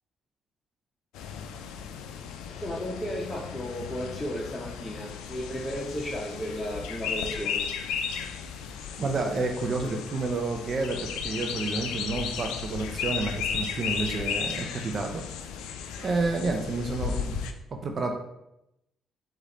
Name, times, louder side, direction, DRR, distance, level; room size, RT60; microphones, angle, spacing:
sound 1, 1.1-17.5, left 7 dB, 80° left, 0.3 m, -35 dB
voice 1, 2.6-7.6 15.9-16.1 16.5-16.6, equal, 15° left, -4 dB, 0.9 m, -34 dB
voice 2, 9.0-15.2 16.0-17.4 17.8-18.1, right 3 dB, 50° right, 4 dB, 0.6 m, -30 dB
4.9 x 2.5 x 4.2 m, 0.86 s
hypercardioid pair, 55°, 0 cm